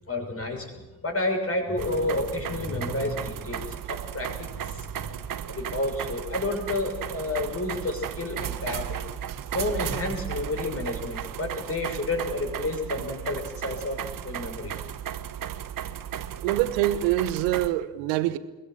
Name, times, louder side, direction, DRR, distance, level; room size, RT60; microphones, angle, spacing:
voice 1, 0.0-0.7 1.0-4.9 5.5-9.0 9.5-14.7, left 2 dB, 30° left, 6.3 m, -30 dB
sound 1, 1.8-17.7, right 10 dB, 45° right, 1.2 m, -35 dB
voice 2, 16.4-18.4, right 14 dB, 70° right, 1.2 m, -25 dB
23.0 x 19.0 x 7.6 m
figure-of-eight pair, 40°, 45 cm